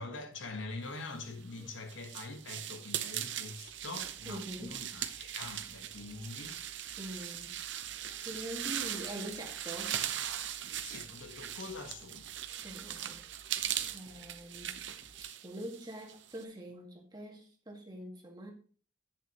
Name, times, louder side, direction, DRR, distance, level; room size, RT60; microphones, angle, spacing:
voice 1, 0.0-6.6 10.8-12.3, left 3 dB, 75° left, 1.4 m, -44 dB
sound 1, 1.3-16.4, right 11 dB, 70° right, 0.8 m, -40 dB
sound 2, 3.6-15.2, equal, 45° right, 1.2 m, -61 dB
voice 2, 4.3-4.8 7.0-7.5 8.2-10.0 12.6-13.3 13.9-14.8 15.4-18.5, right 1 dB, 20° right, 1.9 m, -44 dB
11.0 x 8.5 x 3.1 m
head